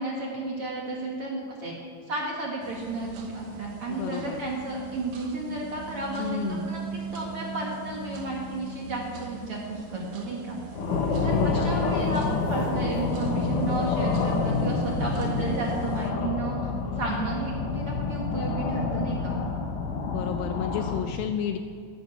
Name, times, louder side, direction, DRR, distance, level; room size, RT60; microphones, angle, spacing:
voice 1, 0.0-1.7 2.1-10.6 11.2-12.2 12.5-16.6 17.0-19.4, right 2 dB, 45° right, -2 dB, 2.0 m, -32 dB
sound 1, 2.6-16.1, right 4 dB, 90° right, 1.3 m, -41 dB
voice 2, 3.9-4.5 6.2-6.7 11.3-11.8 20.1-21.6, left 9 dB, 80° left, 7 dB, 2.1 m, -31 dB
sound 2, 10.7-21.0, left 4 dB, 60° left, 2.6 m, -28 dB
11.0 x 11.0 x 8.6 m, 2.1 s
omnidirectional pair, 4.5 m